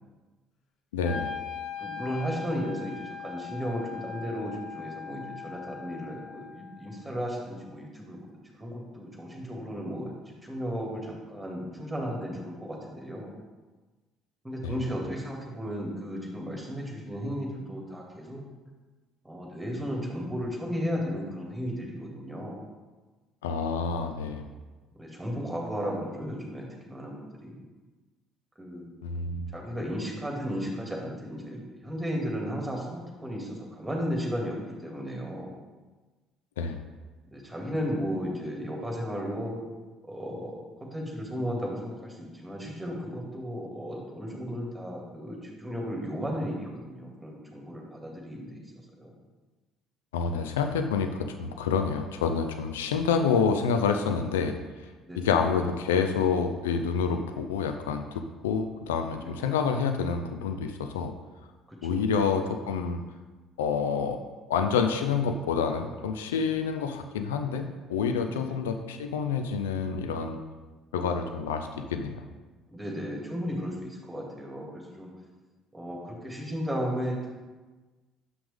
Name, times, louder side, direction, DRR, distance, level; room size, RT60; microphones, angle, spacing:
voice 1, 0.9-1.3 14.6-14.9 23.4-24.5 29.0-29.5 36.6-36.8 50.1-54.6 55.1-61.1 61.8-63.0 63.6-64.2 64.5-67.6 67.9-70.4 70.9-72.2, left 6 dB, 80° left, 6 dB, 0.5 m, -28 dB
Wind instrument woodwind instrument, 1.0-7.1, left 7 dB, 55° left, 0.7 m, -40 dB
voice 2, 1.8-8.2 8.6-13.3 14.4-18.4 19.2-22.6 25.0-27.6 28.6-28.9 29.5-35.5 37.3-39.6 40.0-49.1 55.1-55.3 59.2-59.5 61.7-62.1 68.3-68.5 72.7-75.1 75.7-77.3, equal, 10° right, -1 dB, 2.4 m, -35 dB
7.9 x 5.9 x 3.6 m, 1.3 s
hypercardioid pair, 55°, 0 cm